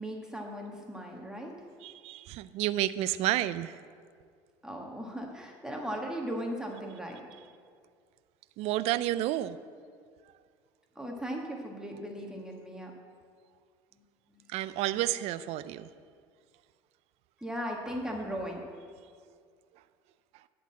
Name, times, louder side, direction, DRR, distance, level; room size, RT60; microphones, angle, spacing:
voice 1, 0.0-1.6 4.6-7.2 10.9-12.9 14.3-14.4 17.4-18.6, equal, 5° right, 0 dB, 1.4 m, -37 dB
voice 2, 1.8-3.8 8.6-9.6 14.5-15.9, right 14 dB, 65° right, 15 dB, 0.4 m, -30 dB
12.0 x 4.0 x 7.5 m, 2.1 s
supercardioid pair, 85°, 12 cm